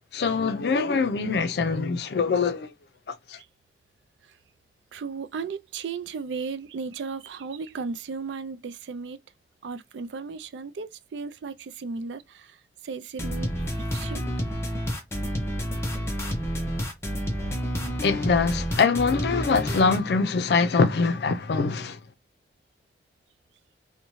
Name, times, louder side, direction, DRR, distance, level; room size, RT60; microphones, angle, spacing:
voice 1, 0.1-2.7 3.1-3.4 18.0-22.0, left 4 dB, 65° left, 0.4 m, -23 dB
voice 2, 4.9-9.2 9.6-12.6 12.8-13.5 13.9-14.2, right 5 dB, 85° right, 0.4 m, -35 dB
sound 1, 13.2-20.0, equal, 15° left, 0.6 m, -29 dB
2.6 x 2.1 x 2.9 m
head